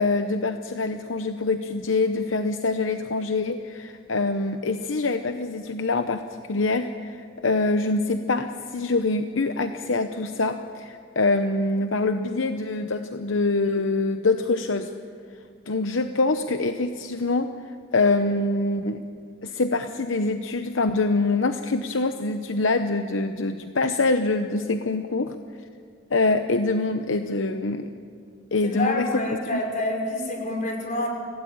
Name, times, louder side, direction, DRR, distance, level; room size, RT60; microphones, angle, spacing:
voice 1, 0.0-6.2 6.5-14.9 15.7-19.0 19.4-25.4 26.1-27.9 28.5-29.6, left 3 dB, 75° left, 7 dB, 0.8 m, -25 dB
voice 2, 28.7-31.1, left 2 dB, 40° left, 1 dB, 5.1 m, -27 dB
26.0 x 16.5 x 8.8 m, 2.3 s
head